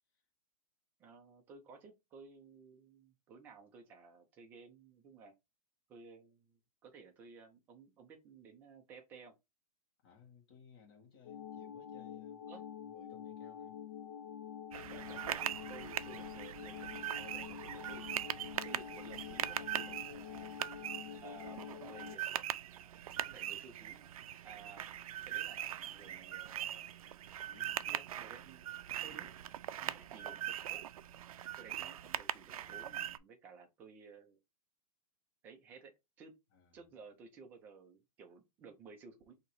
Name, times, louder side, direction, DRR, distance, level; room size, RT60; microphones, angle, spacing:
voice 1, 1.0-5.3 5.9-9.3 12.5-12.6 14.7-18.1 18.6-20.6 21.2-22.3 23.2-24.1 24.4-24.9 25.2-26.9 27.9-28.7 29.0-29.3 29.8-30.8 31.6-34.4 35.4-35.9 36.2-36.3 36.7-39.3, right 5 dB, 10° right, 0.4 m, -56 dB
voice 2, 10.0-13.8 15.3-15.5 27.4-28.1 29.1-29.4 36.5-36.8, left 5 dB, 40° left, 1.6 m, -62 dB
sound 1, 11.2-22.2, left 9 dB, 55° left, 0.6 m, -47 dB
sound 2, 14.7-33.2, right 11 dB, 70° right, 0.4 m, -41 dB
3.9 x 2.8 x 4.6 m
hypercardioid pair, 175°, 19 cm